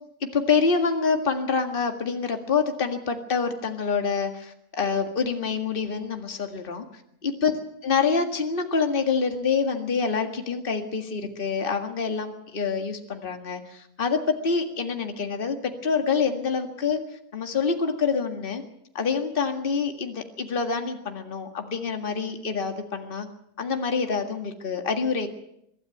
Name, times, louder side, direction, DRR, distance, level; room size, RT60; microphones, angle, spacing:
voice 1, 0.3-6.8 7.2-7.6 7.8-17.0 17.3-18.6 19.0-23.3 23.6-25.3, left 5 dB, 35° left, 5 dB, 2.0 m, -26 dB
24.0 x 12.5 x 9.2 m, 0.75 s
omnidirectional pair, 1.7 m